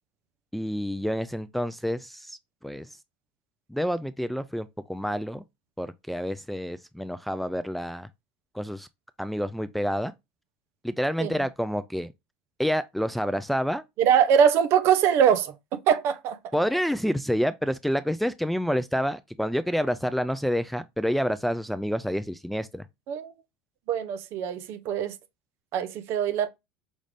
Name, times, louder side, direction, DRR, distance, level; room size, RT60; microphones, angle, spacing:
voice 1, 0.5-2.9 3.7-5.4 5.8-8.1 8.5-8.9 9.2-10.1 10.8-12.1 12.6-13.8 16.5-22.9, equal, ahead, 0.3 m, -28 dB
voice 2, 14.0-16.4 23.1-23.3 23.9-25.1 25.7-26.5, right 8 dB, 55° right, 0.7 m, -22 dB
5.2 x 2.5 x 3.3 m
hypercardioid pair, 95°, 5 cm